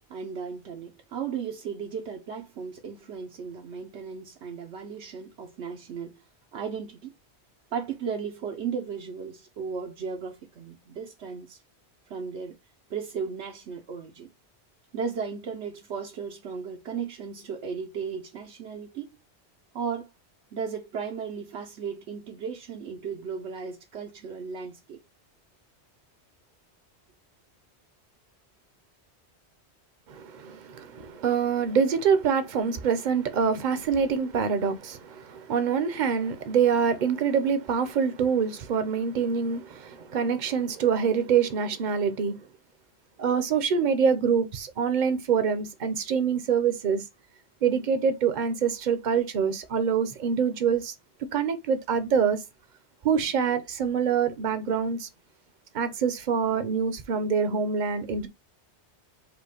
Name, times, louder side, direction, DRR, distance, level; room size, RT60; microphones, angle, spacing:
voice 1, 0.1-6.2 6.5-7.1 7.7-11.6 12.1-12.6 12.9-14.3 14.9-19.2 19.7-20.1 20.5-25.0, right 6 dB, 85° right, 1.0 m, -35 dB
voice 2, 30.1-42.4 43.2-47.0 47.6-50.9 51.3-52.4 53.0-55.1 55.7-58.3, right 6 dB, 50° right, 0.7 m, -25 dB
4.9 x 2.2 x 4.8 m
omnidirectional pair, 1.1 m